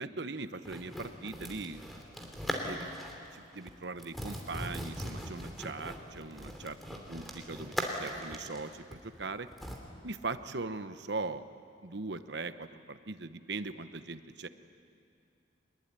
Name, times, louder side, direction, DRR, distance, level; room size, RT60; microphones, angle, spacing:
voice 1, 0.0-1.8 2.6-2.9 3.3-6.8 7.1-9.5 10.0-11.4 11.8-14.5, right 3 dB, 65° right, 11 dB, 1.0 m, -40 dB
sound 1, 0.7-3.3 3.5-3.7 4.0-9.8, equal, ahead, 2.8 m, -40 dB
23.5 x 20.5 x 9.8 m, 2.4 s
head